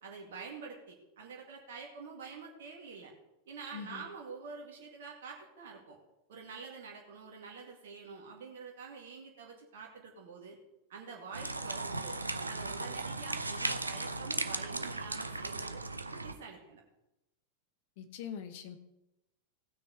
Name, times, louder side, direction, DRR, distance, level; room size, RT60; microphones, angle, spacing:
voice 1, 0.0-3.1 3.5-6.0 6.3-10.6 10.9-12.2 12.5-15.8 16.1-16.8, right 5 dB, 60° right, -1 dB, 2.1 m, -47 dB
voice 2, 3.7-4.0 18.0-18.8, left 8 dB, 50° left, 9 dB, 1.2 m, -43 dB
sound 1, 11.3-16.3, right 3 dB, 80° right, 0.7 m, -37 dB
17.5 x 6.3 x 4.8 m, 0.93 s
figure-of-eight pair, 90°, 0 cm